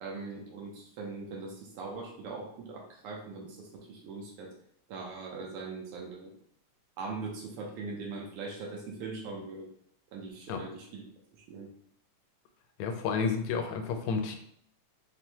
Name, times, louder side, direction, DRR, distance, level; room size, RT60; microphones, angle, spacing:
voice 1, 0.0-4.5 4.9-6.3 7.0-9.7 10.1-11.0 11.3-11.7, right 4 dB, 85° right, -1 dB, 1.2 m, -41 dB
voice 2, 12.8-14.4, left 5 dB, 80° left, 5 dB, 1.8 m, -31 dB
6.0 x 2.1 x 2.8 m, 0.68 s
omnidirectional pair, 3.3 m